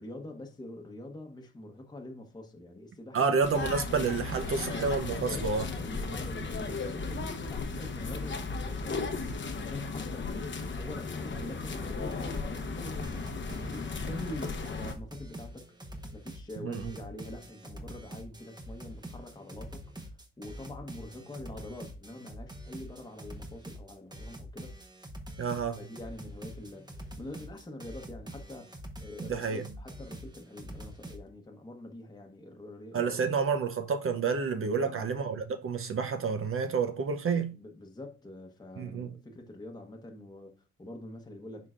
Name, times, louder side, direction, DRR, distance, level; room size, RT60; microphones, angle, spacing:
voice 1, 0.0-3.4 5.0-5.5 5.8-9.2 9.6-15.6 16.1-20.1 20.4-24.7 25.8-33.1 34.8-35.1 37.5-41.7, left 1 dB, 15° left, 1.1 m, -45 dB
voice 2, 3.1-5.6 16.6-16.9 25.4-25.8 29.2-29.7 32.9-37.5 38.8-39.1, right 5 dB, 45° right, 0.7 m, -29 dB
sound 1, 3.4-14.9, left 4 dB, 40° left, 0.9 m, -35 dB
sound 2, 11.7-11.8 12.1-12.7 13.0-31.2, equal, 15° right, 1.1 m, -45 dB
10.5 x 3.7 x 2.5 m
cardioid pair, 90°, 30 cm